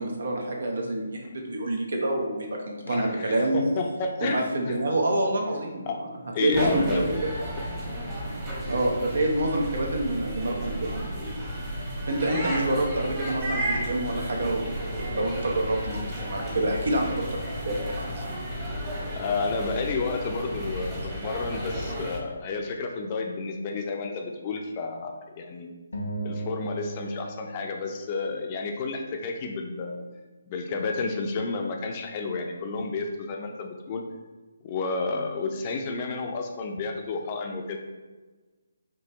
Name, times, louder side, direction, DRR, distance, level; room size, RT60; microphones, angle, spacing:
voice 1, 0.0-3.8 4.2-5.8 6.4-7.2 8.7-11.3 12.1-18.4, right 1 dB, 70° right, 0 dB, 1.0 m, -27 dB
voice 2, 2.9-4.8 5.9-6.0 6.3-7.0 7.3-7.4 19.1-25.7 26.2-30.0 30.5-34.0 34.6-37.8, left 4 dB, 30° left, 3 dB, 0.5 m, -31 dB
sound 1, 6.5-22.2, equal, 20° right, 1.1 m, -33 dB
sound 2, 25.9-28.5, right 2 dB, 80° left, 0.8 m, -36 dB
5.0 x 3.1 x 2.9 m, 1.2 s
figure-of-eight pair, 150°, 0 cm